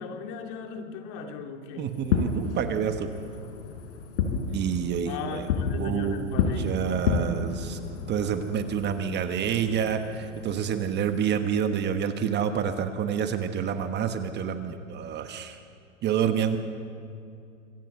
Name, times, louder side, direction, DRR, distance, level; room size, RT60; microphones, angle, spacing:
voice 1, 0.0-1.9 5.0-7.0, left 5 dB, 45° left, 4 dB, 2.5 m, -37 dB
voice 2, 1.8-3.1 4.5-5.5 5.8-7.8 8.1-15.6 16.0-16.6, right 8 dB, 25° right, 8 dB, 1.3 m, -28 dB
Fireworks, 1.9-11.2, left 5 dB, 60° left, 4.1 m, -31 dB
26.0 x 13.5 x 7.9 m, 2.5 s
hypercardioid pair, 120°, 39 cm